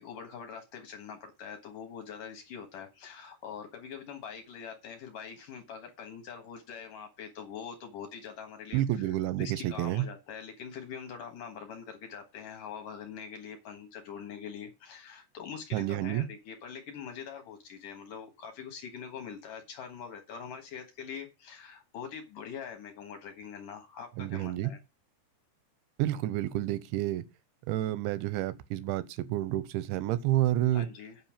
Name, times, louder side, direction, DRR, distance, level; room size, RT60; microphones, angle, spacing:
voice 1, 0.0-9.0 9.4-24.8 30.7-31.2, left 7 dB, 60° left, 2.5 m, -43 dB
voice 2, 8.7-10.1 15.7-16.3 24.2-24.7 26.0-27.2 27.7-30.9, right 14 dB, 90° right, 3.1 m, -29 dB
8.8 x 5.6 x 7.4 m
omnidirectional pair, 5.2 m